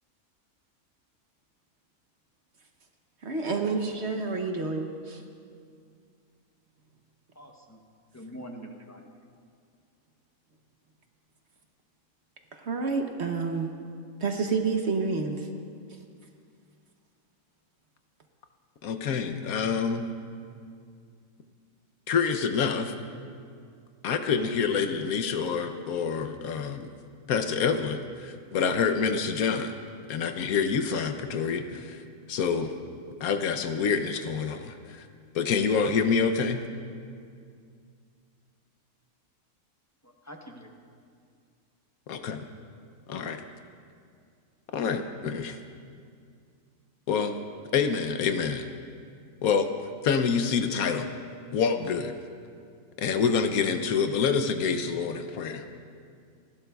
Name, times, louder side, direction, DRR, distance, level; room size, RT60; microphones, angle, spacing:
voice 1, 3.2-5.2 12.5-13.7 14.2-15.5 15.9-16.0, right 4 dB, 50° right, 4 dB, 1.0 m, -29 dB
voice 2, 7.4-7.8 8.1-9.1 40.0-40.7, equal, 15° left, 2 dB, 0.7 m, -44 dB
voice 3, 18.8-20.0 22.1-22.9 24.0-26.9 27.3-29.7 30.1-32.0 32.3-32.7 33.2-35.1 35.3-36.6 42.1-42.4 43.1-43.4 44.7-45.6 47.1-47.4 47.7-48.7 49.4-49.7 50.0-51.1 51.5-52.1 53.0-55.6, left 6 dB, 75° left, 7 dB, 1.1 m, -27 dB
28.0 x 11.5 x 2.3 m, 2.3 s
omnidirectional pair, 1.6 m